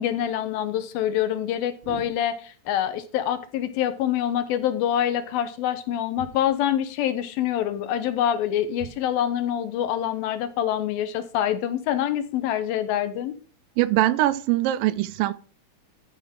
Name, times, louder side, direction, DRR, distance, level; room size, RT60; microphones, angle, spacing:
voice 1, 0.0-13.4, left 10 dB, 75° left, 2.5 m, -26 dB
voice 2, 13.8-15.3, right 15 dB, 85° right, 2.0 m, -22 dB
13.5 x 5.9 x 3.6 m
omnidirectional pair, 4.5 m